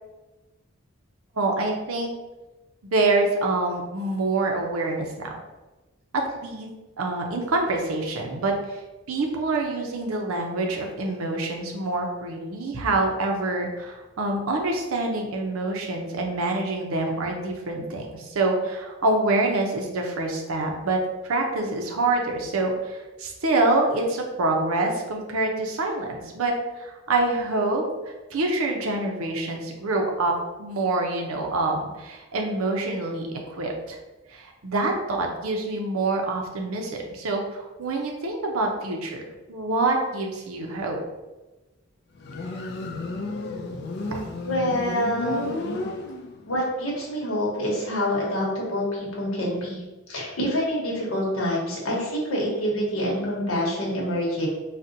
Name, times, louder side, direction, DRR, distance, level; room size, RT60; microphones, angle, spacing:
voice 1, 1.4-2.1 2.9-5.3 6.1-6.7 7.0-8.8 9.1-30.3 30.6-34.0 34.3-39.2 39.5-41.0 44.1-44.2, right 2 dB, 85° right, 2 dB, 0.6 m, -26 dB
Motorcycle, 42.2-46.5, left 2 dB, 50° left, 0.3 m, -32 dB
voice 2, 44.4-45.6 46.5-49.8 50.1-54.5, equal, 85° left, -3 dB, 1.0 m, -26 dB
4.0 x 2.1 x 2.6 m, 1.1 s
head